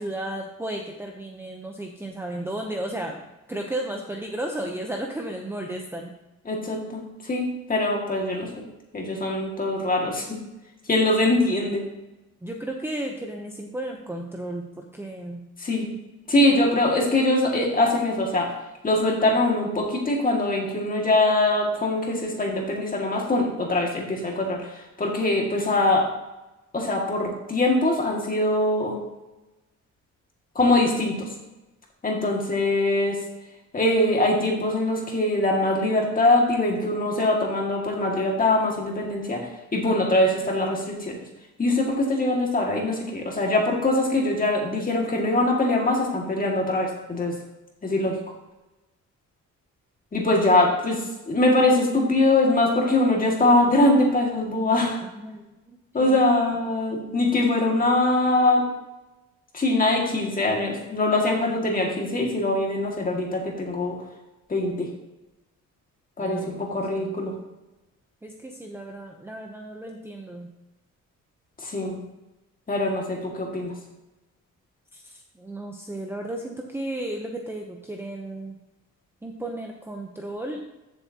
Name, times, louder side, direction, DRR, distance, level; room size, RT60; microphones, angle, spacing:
voice 1, 0.0-6.1 12.4-15.4 17.9-18.0 55.2-56.4 66.2-67.2 68.2-70.5 74.9-78.6 79.2-80.6, right 1 dB, 10° right, 1 dB, 0.7 m, -34 dB
voice 2, 6.5-8.5 8.9-10.4 10.9-11.8 15.6-15.9 16.3-18.5 18.8-26.1 26.7-29.0 30.6-31.3 32.0-33.2 33.7-39.4 39.7-41.2 41.6-47.3 47.8-48.2 50.1-55.0 55.9-58.6 59.5-64.0 64.5-64.9 66.2-67.3 71.6-72.0 72.7-73.7, left 2 dB, 25° left, 0 dB, 2.0 m, -22 dB
14.5 x 7.3 x 2.8 m, 1.0 s
wide cardioid pair, 160°, 31 cm